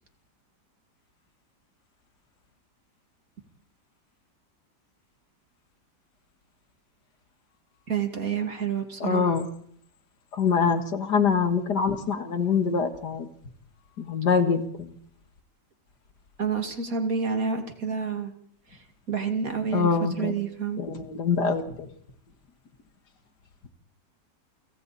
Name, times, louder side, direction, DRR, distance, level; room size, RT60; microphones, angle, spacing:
voice 1, 7.9-9.4 16.4-18.3 18.7-20.8, right 6 dB, 50° right, 6 dB, 2.8 m, -29 dB
voice 2, 9.0-9.5 10.3-13.3 14.0-14.9 19.7-20.3 20.8-21.9, left 5 dB, 70° left, 8 dB, 2.4 m, -24 dB
29.0 x 26.0 x 4.3 m, 0.65 s
omnidirectional pair, 1.9 m